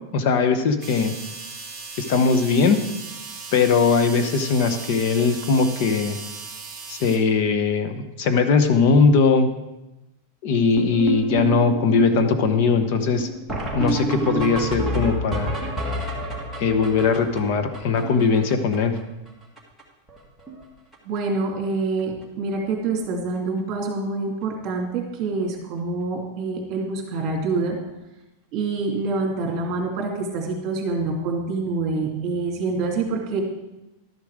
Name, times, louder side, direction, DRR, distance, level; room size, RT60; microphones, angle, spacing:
voice 1, 0.1-1.1 2.0-2.8 3.5-6.2 6.9-9.5 10.4-13.3 13.7-15.6 16.6-18.9, left 5 dB, 50° left, 8 dB, 0.9 m, -20 dB
sound 1, 0.8-7.2, right 4 dB, 10° right, 2.4 m, -37 dB
sound 2, 10.8-19.0 19.3-19.4 19.6-19.8 20.1-20.6 20.9-21.2 22.0-22.1 22.5-22.6 22.9-23.0 25.3-25.4 27.7-27.8, right 2 dB, 5° left, 1.7 m, -29 dB
voice 2, 21.0-27.8 28.5-33.4, right 3 dB, 35° right, 0 dB, 2.6 m, -26 dB
12.0 x 7.2 x 4.9 m, 0.97 s
supercardioid pair, 160°, 0 cm